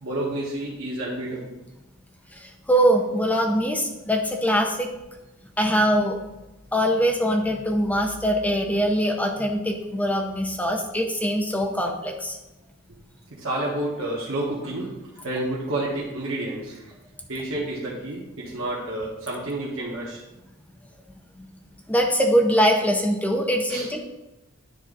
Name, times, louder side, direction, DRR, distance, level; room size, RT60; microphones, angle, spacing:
voice 1, 0.0-1.6 13.3-14.9 15.2-16.9 17.3-20.2 23.7-23.9, right 1 dB, 80° right, -5 dB, 1.5 m, -30 dB
voice 2, 2.3-4.9 5.6-6.2 6.7-12.4 21.4-21.5 21.9-24.0, equal, 5° left, 1 dB, 0.7 m, -22 dB
10.0 x 3.7 x 5.4 m, 0.98 s
head